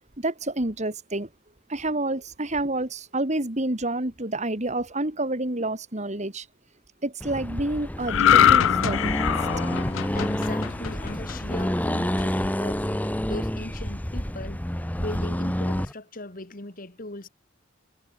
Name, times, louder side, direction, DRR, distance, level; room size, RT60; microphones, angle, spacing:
voice 1, 0.2-1.3 1.7-6.5 7.0-9.3, right 2 dB, 35° right, 2.7 m, -29 dB
Accelerating revving vroom, 7.2-15.9, equal, 10° left, 1.5 m, -28 dB
sound 1, 8.1-11.6 12.0-12.2, left 9 dB, 75° left, 0.4 m, -22 dB
voice 2, 10.1-14.6 14.9-17.3, left 2 dB, 45° left, 2.2 m, -38 dB
head